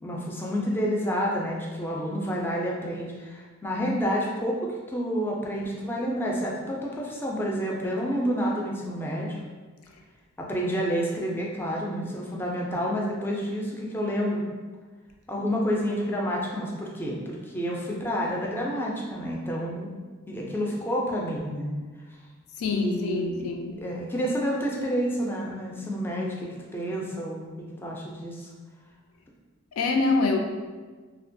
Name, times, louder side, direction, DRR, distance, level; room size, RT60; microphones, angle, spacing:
voice 1, 0.0-4.6 4.9-9.4 10.4-14.4 15.3-19.9 20.3-21.7 22.7-23.4 23.8-28.5, equal, 10° left, -3 dB, 0.3 m, -29 dB
voice 2, 22.6-23.7 29.8-30.4, left 3 dB, 90° left, 3 dB, 0.3 m, -25 dB
2.7 x 2.2 x 2.6 m, 1.4 s
head